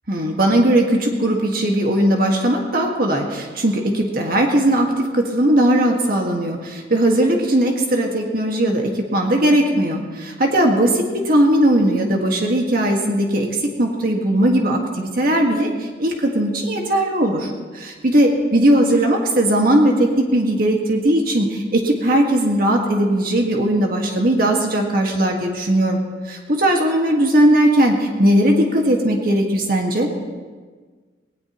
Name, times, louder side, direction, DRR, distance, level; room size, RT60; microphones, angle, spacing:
voice 1, 0.1-26.0 26.3-30.1, right 1 dB, 55° right, 1 dB, 1.7 m, -18 dB
19.5 x 18.5 x 3.0 m, 1.5 s
head